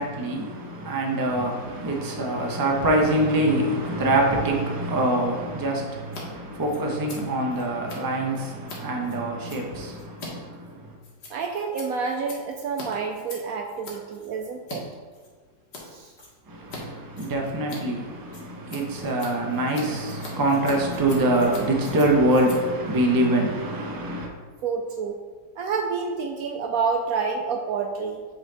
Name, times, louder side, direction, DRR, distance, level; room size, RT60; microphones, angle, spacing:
voice 1, 0.0-10.9 16.5-24.3, right 1 dB, 20° right, 0 dB, 0.6 m, -24 dB
Scissors, 6.0-6.2 6.5-14.8 15.1-15.8 16.2-16.8 17.1-23.9, left 2 dB, 75° left, 1.9 m, -43 dB
voice 2, 11.3-14.8 15.8-16.1 24.6-25.2 25.6-28.2, right 5 dB, 70° right, 3 dB, 0.9 m, -28 dB
7.8 x 4.1 x 4.0 m, 1.5 s
omnidirectional pair, 1.8 m